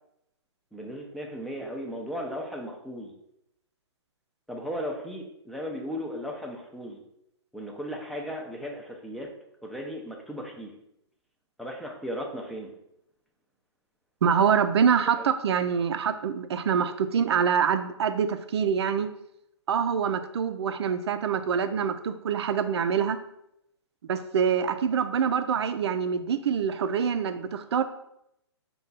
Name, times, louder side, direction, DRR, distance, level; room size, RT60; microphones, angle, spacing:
voice 1, 0.7-3.1 4.5-7.0 7.5-9.3 9.6-10.7 11.6-12.7 15.1-15.3, equal, ahead, 0 dB, 0.4 m, -36 dB
voice 2, 14.2-19.1 19.7-23.2 24.1-27.8, right 7 dB, 65° right, 10 dB, 0.4 m, -25 dB
5.2 x 2.3 x 3.9 m, 0.80 s
hypercardioid pair, 135°, 15 cm